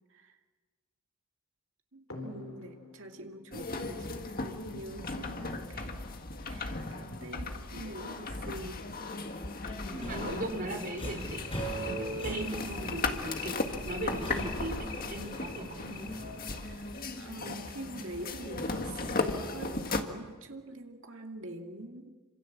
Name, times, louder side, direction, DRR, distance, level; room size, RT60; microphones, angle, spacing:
voice 1, 1.9-5.9 6.4-8.9 12.3-12.9 16.6-16.9 17.2-22.1, right 1 dB, 60° right, 3 dB, 2.4 m, -45 dB
sound 1, 2.1-5.3 6.7-6.8 7.2-7.3 7.7-7.8 8.2-18.3, left 6 dB, 60° left, 3.8 m, -47 dB
sound 2, 3.5-20.0, left 3 dB, 40° left, 1.8 m, -37 dB
Subway metro underground, 9.9-16.5, right 1 dB, 25° left, 6.2 m, -40 dB
voice 2, 9.9-11.4 11.7-16.2, right 1 dB, 40° right, 4 dB, 3.8 m, -38 dB
28.0 x 26.5 x 7.4 m, 1.4 s
head